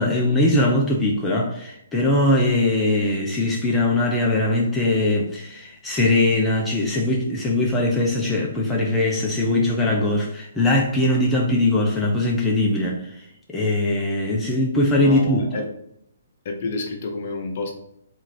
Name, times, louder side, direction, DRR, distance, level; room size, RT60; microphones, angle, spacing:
voice 1, 0.0-15.4, left 2 dB, 10° left, -3 dB, 0.7 m, -21 dB
voice 2, 15.0-15.6 16.4-17.7, left 3 dB, 50° left, 2 dB, 0.9 m, -29 dB
3.8 x 3.0 x 4.3 m, 0.75 s
figure-of-eight pair, 130°, 0 cm